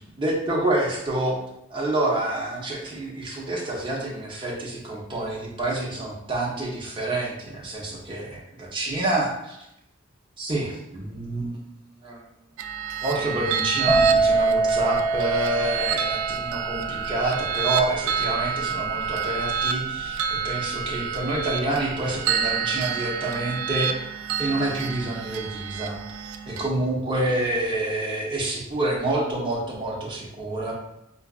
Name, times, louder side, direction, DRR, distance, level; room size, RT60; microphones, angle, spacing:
voice 1, 0.2-1.4 1.7-9.6 10.4-11.6 12.0-12.2 13.0-23.9 24.4-26.0 26.5-30.7, right 2 dB, 25° right, -3 dB, 0.6 m, -27 dB
sound 1, 12.6-26.7, right 7 dB, 85° right, 0.3 m, -29 dB
sound 2, 13.9-21.4 21.7-22.2, right 3 dB, 20° left, 0.5 m, -25 dB
4.6 x 2.4 x 2.3 m, 0.83 s
head